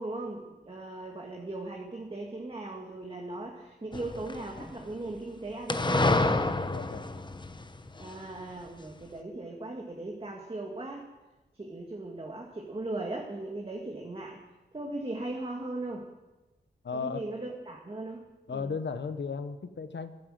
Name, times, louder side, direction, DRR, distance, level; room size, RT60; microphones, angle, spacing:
voice 1, 0.0-6.4 8.0-11.1 11.5-14.4 14.7-16.1 16.9-18.7, right 2 dB, 30° right, 0 dB, 1.8 m, -38 dB
sound 1, 3.9-4.8 5.7-8.2, left 2 dB, 25° left, 0.8 m, -28 dB
voice 2, 6.7-7.1 16.8-17.2 18.5-20.2, left 5 dB, 80° left, 9 dB, 1.0 m, -35 dB
14.5 x 10.0 x 7.7 m, 1.1 s
wide cardioid pair, 105°, 18 cm